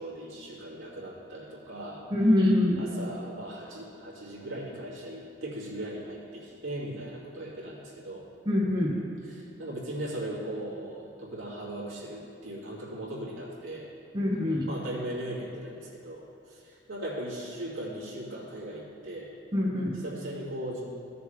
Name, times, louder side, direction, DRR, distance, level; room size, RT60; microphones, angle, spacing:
voice 1, 0.0-2.0 2.8-8.2 9.2-13.9 14.7-19.3 19.9-20.8, right 1 dB, 85° right, -6 dB, 2.5 m, -38 dB
voice 2, 2.1-2.8 8.5-9.0 14.1-14.6 19.5-20.0, left 1 dB, 20° right, -5 dB, 1.2 m, -24 dB
15.0 x 6.9 x 3.4 m, 2.5 s
head